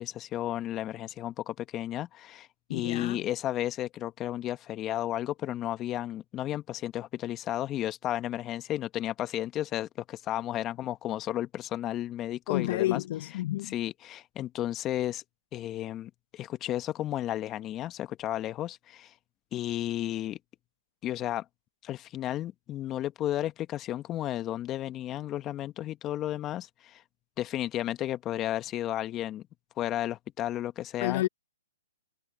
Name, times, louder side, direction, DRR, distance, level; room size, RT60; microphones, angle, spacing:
voice 1, 0.0-13.0 13.7-15.2 15.5-19.1 19.5-20.4 21.0-21.4 21.8-27.0 27.4-29.4 29.8-31.2, left 13 dB, 25° left, 1.3 m, -33 dB
voice 2, 2.7-3.2 12.5-13.7 31.0-31.3, left 15 dB, 50° left, 1.0 m, -30 dB
hypercardioid pair, 140°, 0 cm